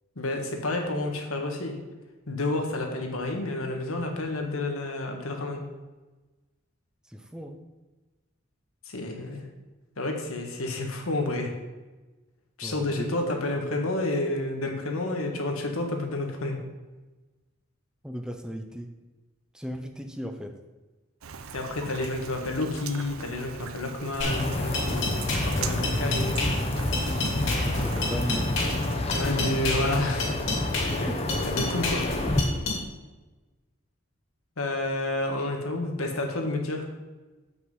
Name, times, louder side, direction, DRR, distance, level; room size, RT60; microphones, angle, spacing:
voice 1, 0.1-1.8 2.3-5.6 8.8-9.4 10.0-11.5 12.6-16.6 21.5-26.4 29.1-30.4 31.0-31.1 31.5-32.1 34.6-36.9, left 2 dB, 90° left, 3 dB, 1.5 m, -30 dB
voice 2, 7.0-7.6 12.6-13.1 18.0-18.9 19.5-20.6 27.5-28.6 30.9-31.3, equal, 5° right, 5 dB, 0.5 m, -36 dB
Rain, 21.2-29.0, right 6 dB, 80° right, 0.6 m, -40 dB
sound 1, 24.2-32.8, left 2 dB, 65° left, 2.5 m, -31 dB
sound 2, 24.2-32.4, left 1 dB, 30° left, 0.7 m, -28 dB
8.0 x 5.9 x 5.5 m, 1.2 s
head